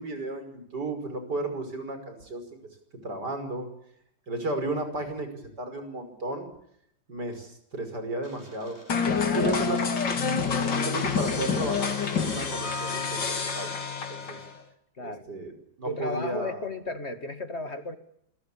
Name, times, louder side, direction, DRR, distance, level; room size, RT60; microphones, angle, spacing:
voice 1, 0.0-2.4 3.0-3.7 4.3-5.3 5.6-6.5 7.1-8.8 9.3-9.8 10.7-12.0 12.2-13.8 14.1-14.4 15.0-16.6, right 2 dB, 60° right, 8 dB, 6.2 m, -33 dB
sound 1, 8.2-14.1, left 1 dB, 10° right, 7.5 m, -45 dB
sound 2, 8.9-14.6, left 5 dB, 75° left, 3.0 m, -27 dB
voice 2, 9.1-9.8 15.0-15.2 15.8-18.0, left 2 dB, 35° left, 9 dB, 2.1 m, -34 dB
27.5 x 21.5 x 8.5 m, 0.72 s
omnidirectional pair, 2.0 m